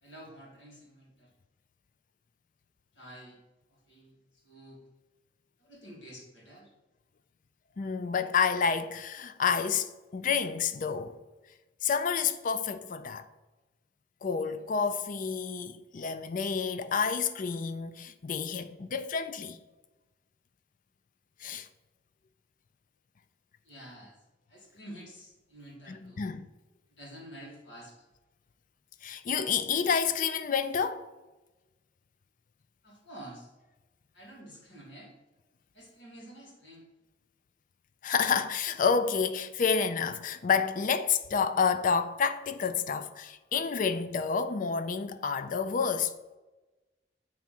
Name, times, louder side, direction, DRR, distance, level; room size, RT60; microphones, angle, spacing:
voice 1, 0.0-1.3 2.9-3.4 3.7-4.8 5.6-6.7 23.6-26.3 26.9-28.0 32.8-33.5 34.1-35.1 35.7-36.9, right 1 dB, 80° left, 2.6 m, -49 dB
voice 2, 7.8-11.2 11.8-13.2 14.2-19.6 21.4-21.7 25.9-26.4 29.0-31.0 38.0-46.1, left 6 dB, 45° left, 0.4 m, -29 dB
7.5 x 3.6 x 5.9 m
head